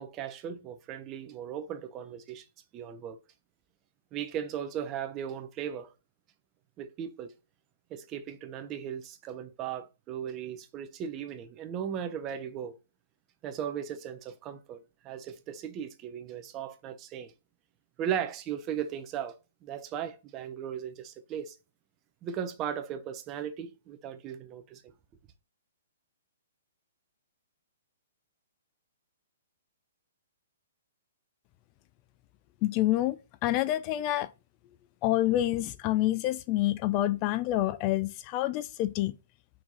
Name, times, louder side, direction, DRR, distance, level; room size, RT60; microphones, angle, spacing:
voice 1, 0.0-2.5 2.7-3.2 4.1-5.9 6.8-7.3 7.9-12.8 13.4-17.3 18.0-21.6 22.2-24.9, right 9 dB, 25° right, 0.9 m, -37 dB
voice 2, 32.6-34.3 35.0-39.1, left 14 dB, 30° left, 0.5 m, -27 dB
6.1 x 4.7 x 4.0 m
hypercardioid pair, 150°, 0 cm